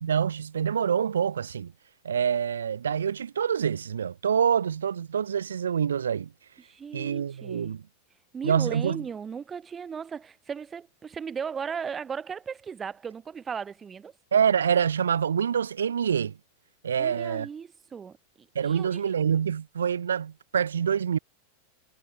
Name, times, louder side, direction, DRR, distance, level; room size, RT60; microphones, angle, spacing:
voice 1, 0.0-1.7 2.0-6.3 6.9-7.8 8.4-9.0 14.3-16.4 16.8-17.5 18.5-21.2, right 7 dB, 70° right, 0.9 m, -26 dB
voice 2, 6.6-7.7 8.3-14.1 17.0-19.0, right 6 dB, 20° right, 1.5 m, -37 dB
figure-of-eight pair, 90°, 0 cm